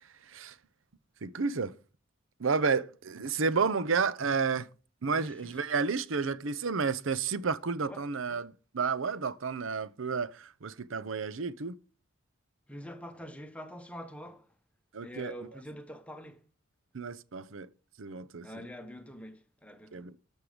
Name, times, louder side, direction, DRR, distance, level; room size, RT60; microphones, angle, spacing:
voice 1, 1.2-1.7 2.4-4.7 5.0-11.8 14.9-15.3 16.9-17.7 18.0-18.5 19.9-20.2, right 5 dB, 75° right, 0.7 m, -31 dB
voice 2, 5.1-5.5 7.9-8.1 12.7-14.6 15.0-16.5 18.4-20.1, equal, 5° left, 1.1 m, -45 dB
13.0 x 6.4 x 5.1 m
head